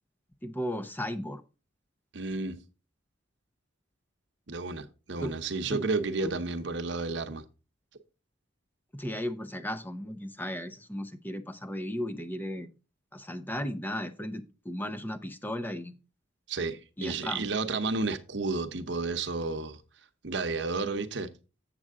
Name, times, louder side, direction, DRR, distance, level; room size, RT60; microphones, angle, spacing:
voice 1, 0.4-1.4 5.2-5.3 5.6-5.8 6.2-6.4 8.9-12.7 13.1-15.9 17.0-17.4, equal, 10° left, 0.6 m, -35 dB
voice 2, 2.1-2.6 4.5-7.4 16.5-19.8 20.2-21.3, right 3 dB, 65° right, 0.9 m, -31 dB
7.6 x 7.6 x 3.6 m
head